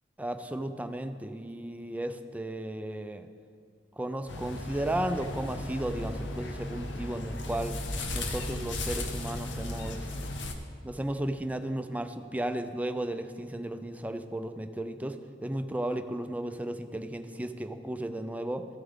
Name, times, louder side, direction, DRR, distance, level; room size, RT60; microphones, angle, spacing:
voice 1, 0.2-3.3 4.0-7.8 8.1-10.1 10.8-18.7, right 1 dB, 10° right, 8 dB, 0.4 m, -34 dB
sound 1, 4.3-10.5, left 2 dB, 85° left, 0.8 m, -36 dB
14.0 x 6.9 x 3.6 m, 2.2 s
head